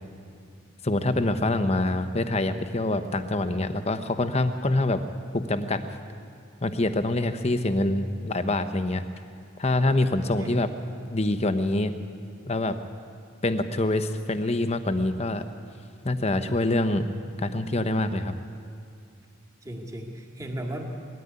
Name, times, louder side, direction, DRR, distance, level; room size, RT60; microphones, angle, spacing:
voice 1, 0.8-5.0 5.3-5.8 6.6-9.0 9.6-10.7 11.1-11.9 12.4-12.8 13.4-15.4 16.0-17.0 17.4-18.3, left 2 dB, 30° left, 10 dB, 0.9 m, -25 dB
voice 2, 10.4-10.8 19.6-20.8, right 1 dB, 15° right, 1 dB, 2.2 m, -35 dB
20.0 x 13.5 x 9.6 m, 2.4 s
head